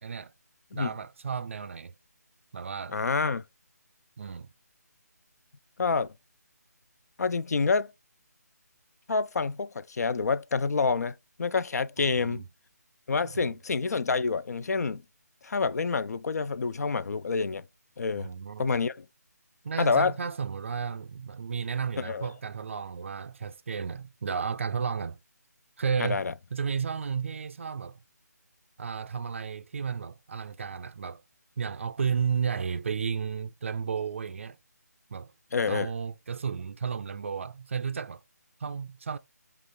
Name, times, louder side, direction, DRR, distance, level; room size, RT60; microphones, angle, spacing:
voice 1, 0.0-0.3 0.7-1.9 2.5-3.1 4.2-4.5 12.0-12.4 13.3-13.6 18.1-18.7 19.6-25.2 25.8-26.2 26.5-28.0 28.8-31.2 31.6-34.6 35.1-35.3 35.7-38.2 38.6-39.2, right 6 dB, 45° right, 0.4 m, -33 dB
voice 2, 2.9-3.4 5.8-6.1 7.2-7.9 9.1-12.4 13.1-15.0 15.4-17.6 18.0-18.3 18.6-19.1 19.8-20.2 22.0-22.3 26.0-26.3 35.5-35.9, left 4 dB, 70° left, 0.4 m, -27 dB
5.2 x 2.4 x 3.6 m
figure-of-eight pair, 165°, 9 cm